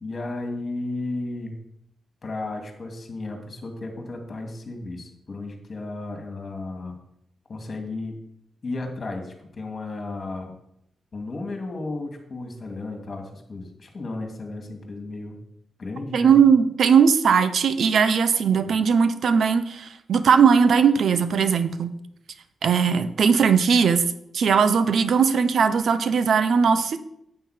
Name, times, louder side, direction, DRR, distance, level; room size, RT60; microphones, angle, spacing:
voice 1, 0.0-1.5 2.2-7.0 7.5-8.2 8.6-10.5 11.1-15.4 15.8-16.4 18.6-18.7, left 2 dB, 45° left, 4 dB, 2.5 m, -34 dB
voice 2, 16.1-21.9 22.6-24.1 24.3-27.0, right 6 dB, 75° right, 12 dB, 0.8 m, -19 dB
9.3 x 8.5 x 5.0 m, 0.76 s
cardioid pair, 95°, 0 cm